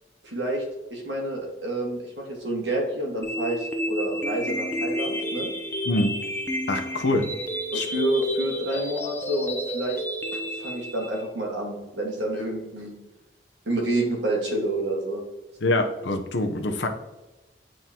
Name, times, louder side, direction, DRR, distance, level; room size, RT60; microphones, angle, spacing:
voice 1, 0.2-0.6 0.9-5.5 7.7-10.0 10.3-12.9 13.6-15.2, right 1 dB, 80° right, -1 dB, 1.6 m, -28 dB
sound 1, 3.2-11.2, equal, 10° left, 0.5 m, -31 dB
voice 2, 6.7-7.4 7.7-7.8 15.6-16.9, left 2 dB, 85° left, 5 dB, 0.7 m, -24 dB
9.1 x 3.8 x 2.8 m, 1.1 s
head